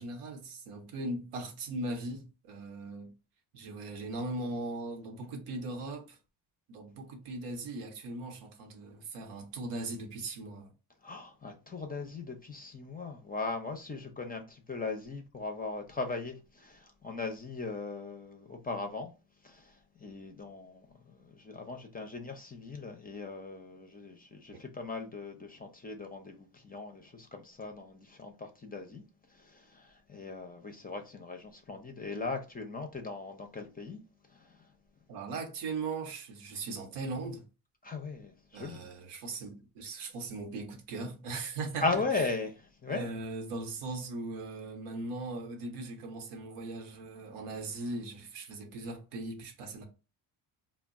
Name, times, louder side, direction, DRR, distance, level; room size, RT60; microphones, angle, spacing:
voice 1, 0.0-3.1 3.5-6.2 6.7-10.7 24.5-24.6 35.1-37.5 38.5-42.3 42.9-49.8, right 2 dB, 80° right, 0.8 m, -39 dB
voice 2, 11.0-19.1 19.4-29.0 29.3-34.0 34.3-34.7 37.8-38.9 41.8-43.1, left 3 dB, 20° left, 0.5 m, -38 dB
2.1 x 2.1 x 3.5 m
supercardioid pair, 65°, 50 cm